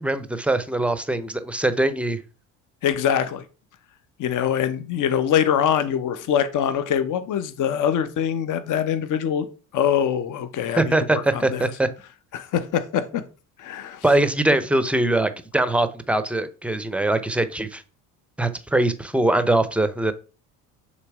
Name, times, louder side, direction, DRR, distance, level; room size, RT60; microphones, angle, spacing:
voice 1, 0.0-2.2 10.8-11.9 14.0-17.8 18.4-20.1, right 2 dB, 5° right, 0.6 m, -22 dB
voice 2, 2.8-3.4 4.2-9.5 9.7-11.7 12.3-13.2 13.6-14.0, left 9 dB, 50° left, 1.0 m, -23 dB
6.8 x 3.1 x 4.8 m
supercardioid pair, 90°, 39 cm